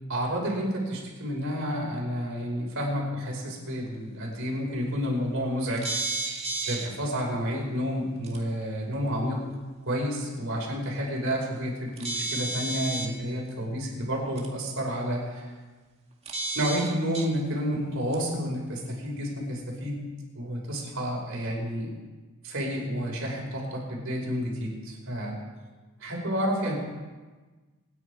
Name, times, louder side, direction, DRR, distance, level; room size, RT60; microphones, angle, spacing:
voice 1, 0.1-5.9 6.7-9.4 9.9-15.5 16.6-20.0 20.4-21.9 22.4-25.4 26.0-26.8, equal, 60° right, -2 dB, 5.1 m, -30 dB
sound 1, 5.8-6.9 8.2-8.4 12.0-13.1 14.4-14.5 16.3-17.3 18.1-18.2, right 2 dB, 30° right, 2.1 m, -31 dB
26.0 x 10.0 x 4.9 m, 1.3 s
head